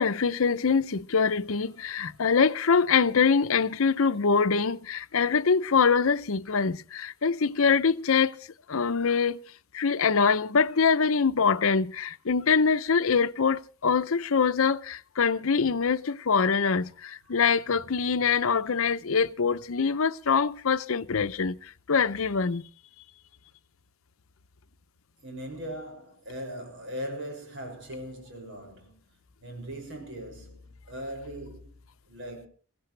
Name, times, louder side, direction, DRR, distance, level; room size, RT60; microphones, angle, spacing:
voice 1, 0.0-8.4 8.7-9.4 9.7-22.7, left 5 dB, 70° left, 0.7 m, -24 dB
voice 2, 18.1-18.4 25.2-29.0 29.4-31.8 32.1-32.5, equal, 60° right, 6.3 m, -39 dB
23.0 x 16.0 x 3.3 m
head